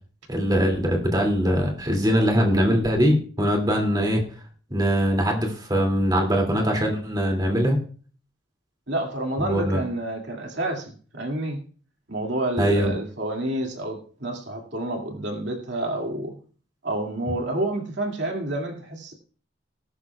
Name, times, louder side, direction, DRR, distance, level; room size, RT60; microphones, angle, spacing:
voice 1, 0.3-4.2 4.7-7.8 9.4-9.8 12.6-12.9, equal, 20° right, 1 dB, 2.6 m, -22 dB
voice 2, 8.9-11.6 12.1-16.3 16.8-19.1, right 1 dB, 65° right, 1 dB, 2.4 m, -29 dB
19.5 x 11.5 x 2.4 m, 0.42 s
head